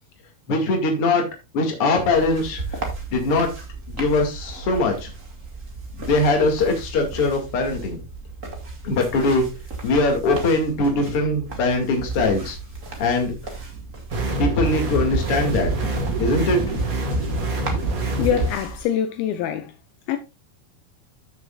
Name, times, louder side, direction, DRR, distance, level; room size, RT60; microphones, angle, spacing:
voice 1, 0.5-1.3 1.5-2.8 3.1-3.5 3.9-5.1 6.0-8.0 8.8-9.5 9.8-12.6 13.0-13.3 14.4-15.9 16.2-16.6 17.0-17.3, left 2 dB, 40° left, 2.6 m, -21 dB
sound 1, 1.9-18.8, right 3 dB, 35° right, 1.3 m, -36 dB
sound 2, 14.1-18.5, right 2 dB, 70° right, 0.8 m, -25 dB
voice 2, 18.2-19.7 20.1-20.2, left 9 dB, 80° left, 2.4 m, -24 dB
13.5 x 6.6 x 2.4 m
omnidirectional pair, 4.4 m